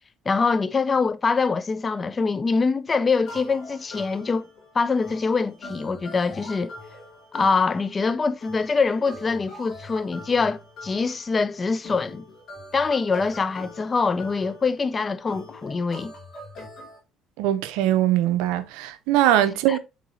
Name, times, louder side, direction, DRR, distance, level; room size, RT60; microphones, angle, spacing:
voice 1, 0.3-4.5 4.7-6.7 7.3-12.2 12.7-16.1 19.7-19.8, left 4 dB, 30° left, 0.4 m, -24 dB
sound 1, 3.3-17.0, left 2 dB, 55° left, 2.2 m, -43 dB
voice 2, 17.4-19.8, right 12 dB, 85° right, 0.5 m, -21 dB
4.7 x 3.8 x 2.6 m
supercardioid pair, 85°, 0 cm